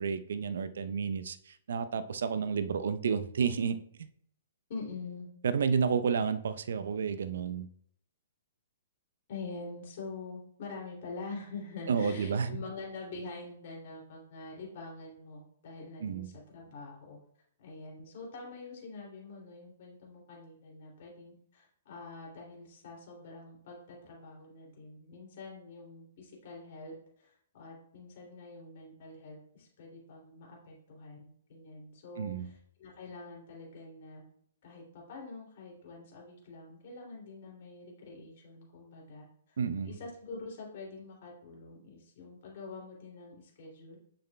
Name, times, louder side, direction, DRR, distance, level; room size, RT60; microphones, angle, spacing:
voice 1, 0.0-4.1 5.4-7.7 11.9-12.5 16.0-16.3 32.2-32.5 39.6-40.0, right 6 dB, 65° right, 12 dB, 0.6 m, -31 dB
voice 2, 4.7-5.3 9.3-17.2 17.6-34.2 34.6-39.6 39.8-44.0, left 3 dB, 50° left, -2 dB, 2.7 m, -45 dB
7.9 x 6.7 x 2.2 m, 0.65 s
figure-of-eight pair, 120°, 0 cm